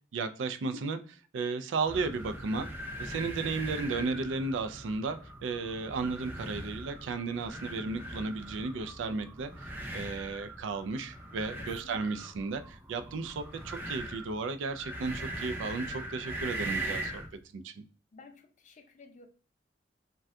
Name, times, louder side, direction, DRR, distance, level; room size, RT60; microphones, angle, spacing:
voice 1, 0.1-2.7 3.0-17.2 17.5-17.8, right 4 dB, 80° right, 0.3 m, -34 dB
sound 1, 1.8-17.3, right 1 dB, 10° right, 0.5 m, -41 dB
voice 2, 11.6-12.0 18.1-19.3, left 3 dB, 40° left, 0.5 m, -54 dB
2.6 x 2.2 x 3.3 m
head